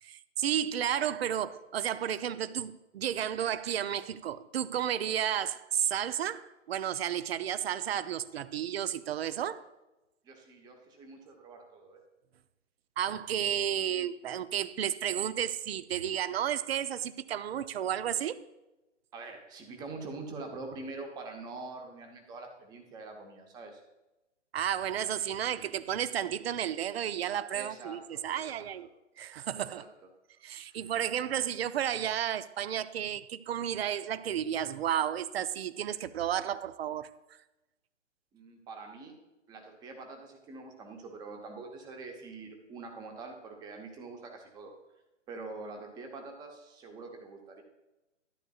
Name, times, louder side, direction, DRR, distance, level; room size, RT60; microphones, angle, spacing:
voice 1, 0.0-9.6 13.0-18.4 24.5-28.9 29.2-29.8 30.4-37.1, right 10 dB, 55° right, 0.6 m, -32 dB
voice 2, 10.2-12.0 19.1-23.8 27.5-28.2 28.5-28.7 29.5-29.9 30.6-30.8 38.3-39.2 39.5-44.7 45.3-47.6, right 3 dB, 10° right, 0.8 m, -45 dB
12.5 x 10.5 x 2.4 m
hypercardioid pair, 140°, 37 cm